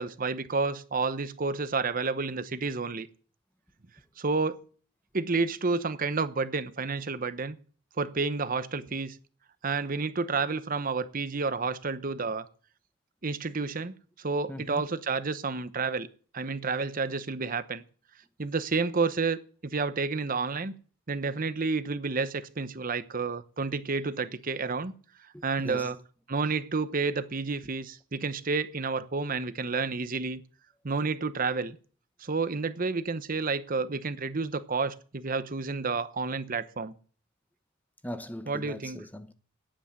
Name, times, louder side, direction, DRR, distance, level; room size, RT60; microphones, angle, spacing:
voice 1, 0.0-3.1 4.2-4.6 5.1-7.6 8.0-9.2 9.6-12.5 13.2-16.1 16.3-17.8 18.4-20.7 21.1-24.9 25.4-26.0 26.3-30.4 30.8-31.8 32.2-36.9 38.5-39.0, right 4 dB, 45° right, 0.9 m, -30 dB
voice 2, 14.5-14.9 25.3-25.9 38.0-39.3, left 1 dB, 10° left, 0.9 m, -40 dB
9.9 x 8.9 x 9.6 m
head